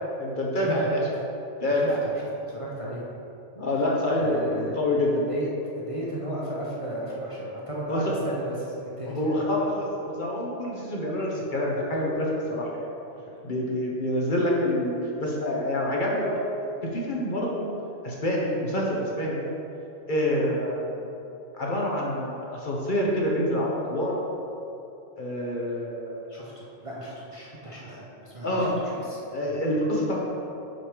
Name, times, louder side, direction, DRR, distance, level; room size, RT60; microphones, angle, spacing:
voice 1, 0.2-1.1 1.6-2.0 3.6-5.3 7.9-8.1 9.1-12.8 13.4-15.0 15.2-17.7 18.0-19.4 20.1-21.1 21.5-24.2 25.2-26.2 27.8-28.0 28.4-28.7 29.3-30.2, left 1 dB, 45° left, -3 dB, 1.0 m, -27 dB
voice 2, 2.5-3.0 4.1-4.7 5.1-5.5 5.9-9.4 13.2-13.3 26.3-29.2 29.5-29.6, right 1 dB, 30° right, -6 dB, 0.8 m, -35 dB
6.4 x 4.9 x 4.9 m, 2.9 s
omnidirectional pair, 1.3 m